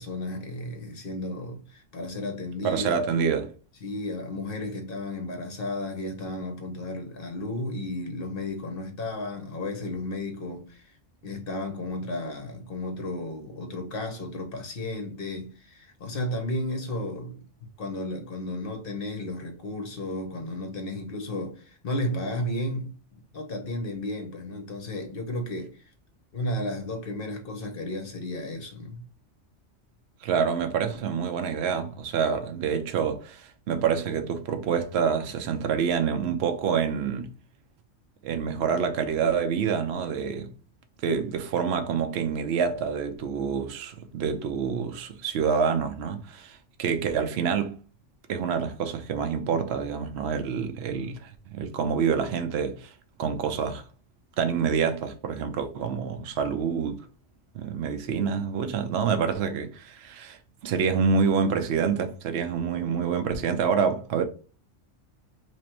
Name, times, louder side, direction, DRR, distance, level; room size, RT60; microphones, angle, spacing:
voice 1, 0.0-3.0 3.8-11.0 11.2-23.0 23.3-25.8 26.3-29.0, left 1 dB, 50° left, 1.1 m, -33 dB
voice 2, 2.6-3.5 30.2-37.3 38.2-40.5 41.0-47.8 48.3-52.9 53.2-53.8 54.4-57.0 57.5-64.2, right 6 dB, 65° right, 0.9 m, -27 dB
3.0 x 2.5 x 4.3 m
omnidirectional pair, 1.3 m